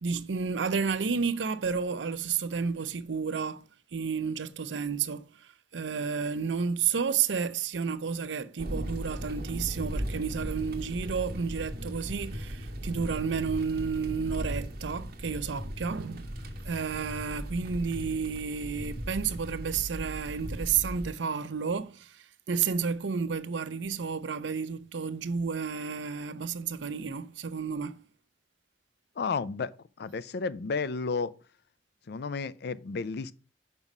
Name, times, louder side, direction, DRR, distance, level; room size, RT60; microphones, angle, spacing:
voice 1, 0.0-3.6 3.9-16.3 16.6-28.0, right 6 dB, 85° right, 0.6 m, -31 dB
sound 1, 8.6-21.1, equal, 55° right, 1.2 m, -37 dB
voice 2, 29.2-29.7 30.0-31.3 32.1-33.3, left 4 dB, 65° left, 0.4 m, -32 dB
6.0 x 5.4 x 5.4 m
head